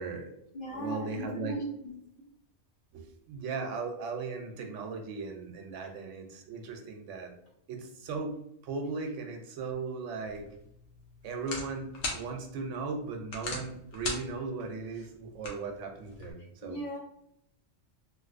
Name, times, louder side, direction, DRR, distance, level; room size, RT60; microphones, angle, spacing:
voice 1, 0.0-1.6 2.9-7.3 7.7-8.4 8.6-10.4 11.2-16.8, right 4 dB, 75° right, 4 dB, 0.9 m, -37 dB
voice 2, 0.5-1.9 16.6-17.0, equal, 55° left, -2 dB, 0.6 m, -38 dB
sound 1, 10.2-16.3, left 2 dB, 85° left, 1.1 m, -41 dB
3.2 x 2.6 x 2.4 m, 0.76 s
omnidirectional pair, 1.3 m